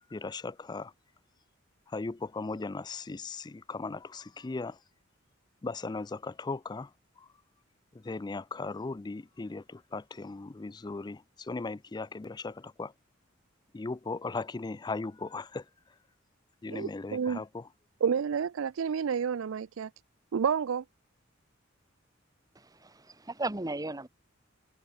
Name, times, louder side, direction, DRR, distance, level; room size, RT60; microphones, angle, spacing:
voice 1, 0.1-0.9 1.9-4.8 5.6-7.3 7.9-12.9 13.7-15.7 16.6-17.7, left 3 dB, 20° left, 0.4 m, -38 dB
voice 2, 16.7-17.4 18.0-19.9 20.3-20.8, right 7 dB, 75° right, 0.4 m, -30 dB
voice 3, 22.5-24.1, right 2 dB, 20° right, 1.2 m, -36 dB
head